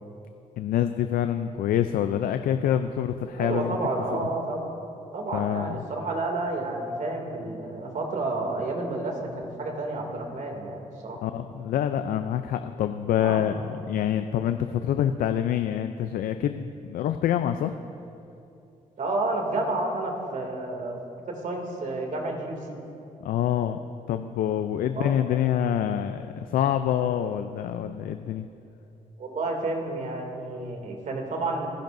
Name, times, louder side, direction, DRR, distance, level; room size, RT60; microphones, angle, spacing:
voice 1, 0.6-3.8 4.1-4.3 5.3-5.8 11.2-13.5 13.9-17.7 23.2-23.8 24.1-28.5, left 10 dB, 80° left, 9 dB, 0.5 m, -26 dB
voice 2, 3.4-4.8 5.1-11.2 13.2-13.5 19.0-21.0 21.3-22.8 24.9-25.1 29.2-31.7, right 2 dB, 60° right, 1 dB, 2.5 m, -30 dB
27.0 x 10.5 x 2.6 m, 2.7 s
cardioid pair, 70°, 14 cm